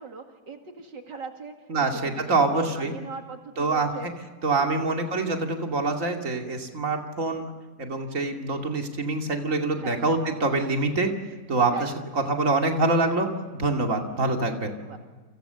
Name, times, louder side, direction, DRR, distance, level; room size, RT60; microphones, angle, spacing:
voice 1, 0.0-4.1 4.6-4.7 9.8-10.0 11.7-12.1 14.6-15.0, right 4 dB, 75° right, 4 dB, 2.8 m, -39 dB
voice 2, 1.7-2.9 3.6-3.9 4.4-7.5 7.8-11.1 11.5-11.9 12.3-13.3 13.6-14.7, right 3 dB, 45° right, 2 dB, 2.9 m, -25 dB
30.0 x 25.5 x 7.0 m, 1.4 s
omnidirectional pair, 1.9 m